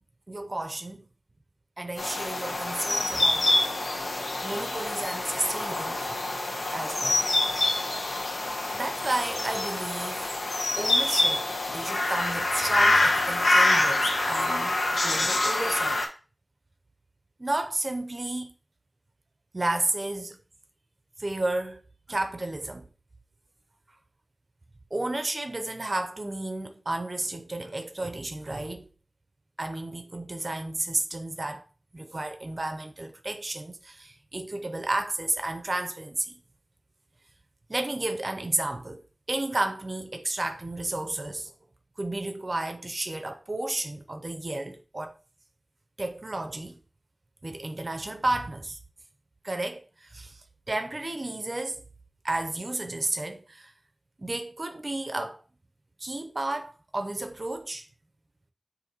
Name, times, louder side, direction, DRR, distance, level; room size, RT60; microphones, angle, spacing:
voice 1, 0.3-1.0 1.8-3.5 4.4-6.1 6.7-7.2 8.7-10.3 10.8-16.0 17.4-18.5 19.5-20.4 21.2-21.8 22.1-22.9 24.9-28.9 29.6-31.6 31.9-36.3 37.7-39.0 39.3-41.5 42.0-45.1 46.0-46.8 47.4-48.8 49.4-50.4 50.7-51.8 52.2-53.7 54.2-55.4 56.0-57.9, right 2 dB, 45° right, 0.6 m, -32 dB
sound 1, 2.0-16.1, left 2 dB, 80° left, 0.9 m, -26 dB
6.8 x 2.7 x 2.9 m
wide cardioid pair, 55°, 0 cm